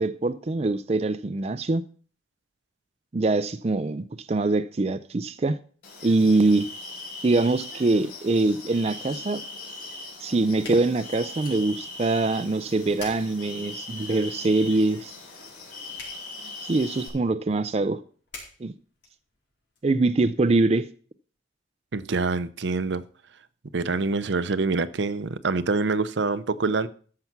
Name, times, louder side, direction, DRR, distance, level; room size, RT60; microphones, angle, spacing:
voice 1, 0.0-1.8 3.1-5.6 6.0-6.7 7.2-9.4 10.2-15.1 16.6-18.0 18.6-18.7 19.8-20.9, right 2 dB, 35° right, 0.4 m, -23 dB
sound 1, 5.8-17.1, left 2 dB, 55° left, 4.7 m, -40 dB
sound 2, 9.8-19.8, left 3 dB, 75° left, 4.6 m, -50 dB
voice 2, 21.9-23.0 23.7-26.9, right 3 dB, 75° right, 0.7 m, -25 dB
13.5 x 5.8 x 5.9 m
head